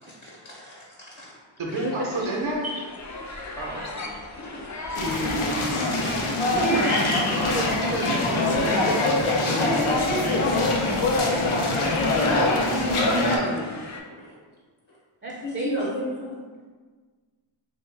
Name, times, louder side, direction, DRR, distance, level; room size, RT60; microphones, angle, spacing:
voice 1, 0.0-1.3 2.6-2.8 4.3-4.9 9.5-10.8 14.1-14.3 14.9-15.0 15.4-16.3, equal, 70° left, -6 dB, 0.9 m, -32 dB
voice 2, 1.6-2.6 3.5-4.1 6.7-7.1, right 2 dB, 75° right, -2 dB, 0.7 m, -30 dB
sound 1, 1.7-14.0, left 2 dB, 40° left, 0.4 m, -37 dB
sound 2, 4.9-13.4, left 2 dB, 90° left, 0.6 m, -23 dB
voice 3, 6.5-7.0 7.5-9.1 12.2-13.8 15.2-15.7, right 1 dB, 25° right, -3 dB, 0.4 m, -30 dB
3.0 x 2.2 x 3.2 m, 1.5 s
wide cardioid pair, 45°, 48 cm